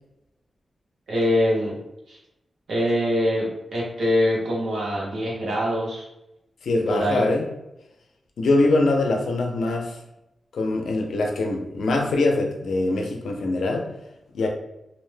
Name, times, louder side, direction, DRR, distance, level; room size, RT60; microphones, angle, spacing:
voice 1, 1.1-1.7 2.1-2.2 2.7-6.1 6.9-7.2, equal, 75° right, -4 dB, 0.9 m, -23 dB
voice 2, 6.6-7.5 8.4-10.0 10.5-13.9 14.3-14.5, left 2 dB, 90° left, 2 dB, 0.5 m, -23 dB
2.4 x 2.1 x 3.2 m, 0.89 s
wide cardioid pair, 115°, 0 cm